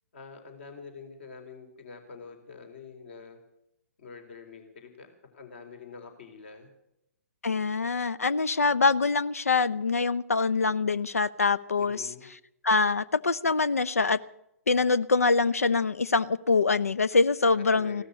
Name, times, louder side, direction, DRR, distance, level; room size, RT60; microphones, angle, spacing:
voice 1, 0.1-3.4 4.0-6.7 11.8-12.3 17.7-18.0, left 5 dB, 50° left, 6 dB, 4.1 m, -46 dB
voice 2, 7.4-12.1 12.6-14.2 14.7-18.0, left 4 dB, 70° left, 18 dB, 0.8 m, -24 dB
16.5 x 13.0 x 6.8 m, 0.83 s
figure-of-eight pair, 125°, 8 cm